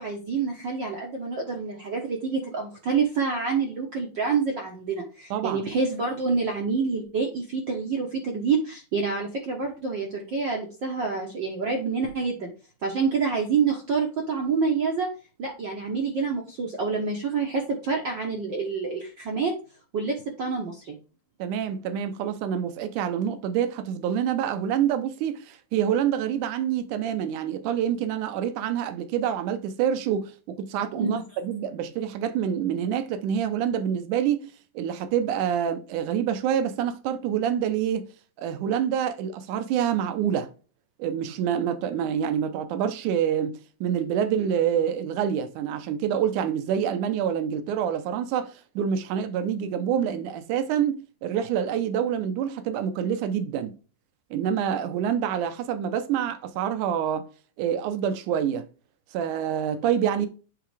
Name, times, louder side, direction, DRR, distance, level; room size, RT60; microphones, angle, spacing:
voice 1, 0.0-12.5 12.8-15.1 15.4-19.5 19.9-20.9 31.0-31.2, right 5 dB, 60° right, 1.2 m, -27 dB
voice 2, 5.3-5.6 21.4-38.1 38.4-40.5 41.0-43.5 43.8-53.8 54.3-57.2 57.6-58.7 59.1-60.3, right 9 dB, 80° right, 2.3 m, -27 dB
8.6 x 3.7 x 3.3 m
omnidirectional pair, 3.6 m